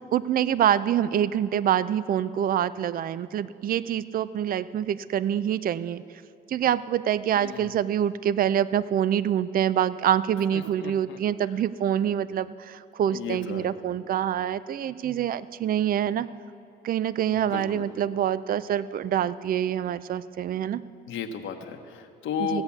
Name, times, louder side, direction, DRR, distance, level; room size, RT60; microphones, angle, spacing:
voice 1, 0.1-6.0 6.5-16.3 16.8-20.8 22.5-22.6, right 10 dB, 45° right, 17 dB, 0.4 m, -26 dB
voice 2, 7.4-7.8 10.5-11.2 13.1-13.7 17.3-17.9 21.1-22.6, left 7 dB, 75° left, 4 dB, 1.1 m, -34 dB
16.0 x 8.1 x 7.1 m, 2.5 s
cardioid pair, 90°, 20 cm